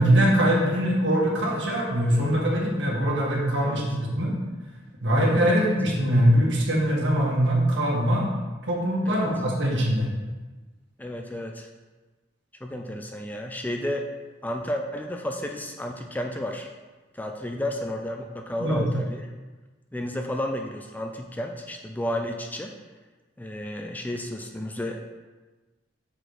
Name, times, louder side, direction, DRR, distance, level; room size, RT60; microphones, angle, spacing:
voice 1, 0.0-4.3 5.0-8.3 8.7-10.1 18.6-18.8, equal, 75° right, -3 dB, 1.7 m, -22 dB
voice 2, 11.0-11.7 12.6-14.1 14.4-16.7 17.1-19.3 19.9-22.7 23.4-25.0, left 1 dB, 10° left, 3 dB, 0.4 m, -32 dB
6.4 x 4.4 x 4.8 m, 1.2 s
head